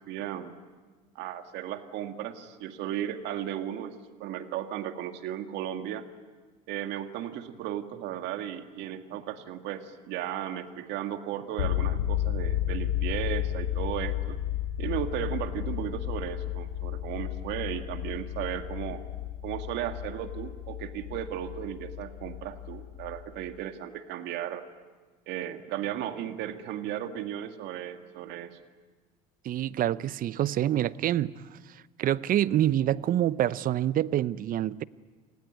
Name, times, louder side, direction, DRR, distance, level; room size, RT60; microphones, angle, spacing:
voice 1, 0.1-0.5 1.2-6.0 6.7-14.4 14.8-19.0 19.4-24.7 25.3-28.6, right 11 dB, 65° right, 7 dB, 2.1 m, -35 dB
sound 1, 11.6-23.5, left 12 dB, 90° left, 1.1 m, -33 dB
voice 2, 29.4-31.3 32.0-34.8, right 12 dB, 45° right, 18 dB, 0.8 m, -26 dB
28.5 x 19.0 x 9.4 m, 1.4 s
supercardioid pair, 85°, 19 cm